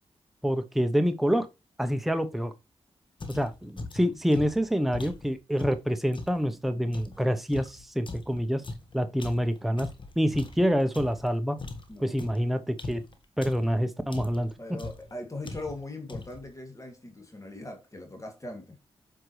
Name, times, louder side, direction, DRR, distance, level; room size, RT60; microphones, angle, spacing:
voice 1, 0.4-1.5 1.8-2.5 3.3-8.6 8.9-9.9 10.2-11.6 12.0-13.0 13.4-14.5, equal, ahead, 0.8 m, -27 dB
sound 1, 3.2-6.4 6.9-11.3 11.6-13.8 14.1-14.5 14.8-15.1 15.4-15.8 16.1-16.5, left 3 dB, 50° left, 1.5 m, -40 dB
voice 2, 14.6-18.8, left 2 dB, 30° left, 2.5 m, -40 dB
7.7 x 5.2 x 3.2 m
cardioid pair, 55°, 11 cm